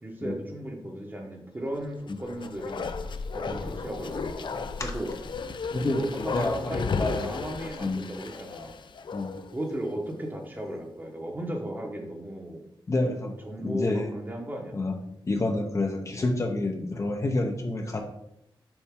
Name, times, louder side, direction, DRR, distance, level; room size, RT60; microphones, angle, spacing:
voice 1, 0.0-2.9 3.3-4.5 4.8-5.1 5.8-8.8 9.5-12.6 13.4-14.8, right 1 dB, 20° right, 1 dB, 1.1 m, -35 dB
Bark, 2.0-9.6 9.9-10.0, left 5 dB, 65° left, 0.5 m, -34 dB
voice 2, 4.5-4.9 5.7-7.3 7.8-8.0 9.1-9.4 12.9-14.1 14.7-14.9 15.3-18.0, left 2 dB, 35° left, 3 dB, 0.8 m, -29 dB
7.2 x 5.4 x 3.7 m, 0.79 s
wide cardioid pair, 165°, 9 cm